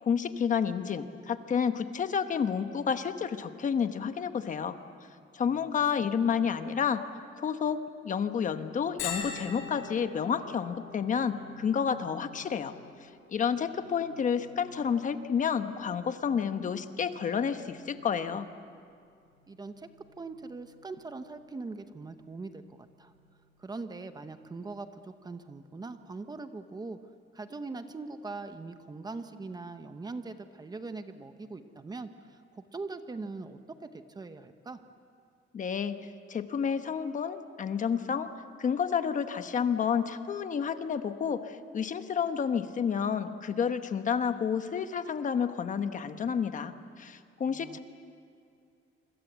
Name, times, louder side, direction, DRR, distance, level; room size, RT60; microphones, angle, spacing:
voice 1, 0.0-4.8 5.3-7.0 7.4-12.7 13.0-18.5 35.5-38.3 38.6-47.8, left 7 dB, 40° left, 9 dB, 1.0 m, -30 dB
Bell, 9.0-24.4, left 5 dB, 80° left, 7.7 m, -47 dB
voice 2, 19.5-23.1 23.6-27.0 27.3-34.8 47.5-47.8, right 3 dB, 20° right, 8 dB, 0.9 m, -41 dB
26.5 x 26.0 x 8.1 m, 2.4 s
cardioid pair, 175°, 21 cm